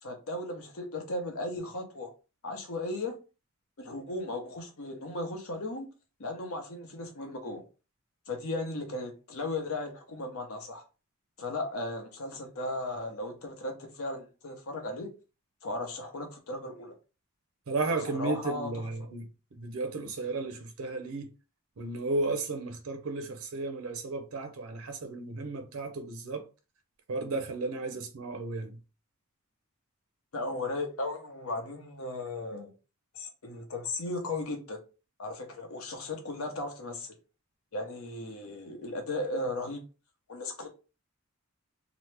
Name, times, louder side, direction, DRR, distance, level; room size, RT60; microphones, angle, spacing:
voice 1, 0.0-2.1 2.4-3.1 3.8-5.9 6.2-7.6 8.3-10.8 11.4-15.1 15.6-16.9 18.0-18.7 30.3-32.7 33.1-34.8 35.2-37.1 37.7-39.8 40.3-40.7, left 2 dB, 75° left, 0.8 m, -36 dB
voice 2, 17.7-21.3 21.8-26.4 27.1-28.8, right 3 dB, 75° right, 0.5 m, -34 dB
2.9 x 2.0 x 3.2 m
head